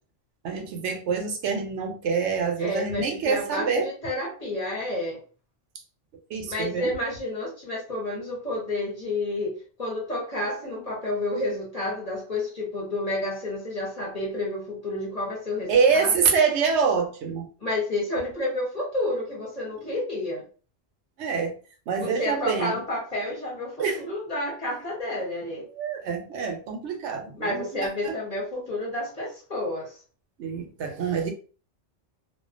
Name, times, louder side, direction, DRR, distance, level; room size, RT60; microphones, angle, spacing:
voice 1, 0.4-3.9 6.3-6.9 15.7-17.5 19.9-20.0 21.2-21.6 21.9-22.8 23.8-24.0 25.7-28.2 30.4-31.3, right 5 dB, 80° right, 3 dB, 0.9 m, -26 dB
voice 2, 2.6-5.2 6.5-16.1 17.6-20.5 22.0-25.7 27.4-30.0, left 1 dB, 35° left, -4 dB, 0.9 m, -30 dB
2.3 x 2.2 x 2.4 m, 0.38 s
omnidirectional pair, 1.2 m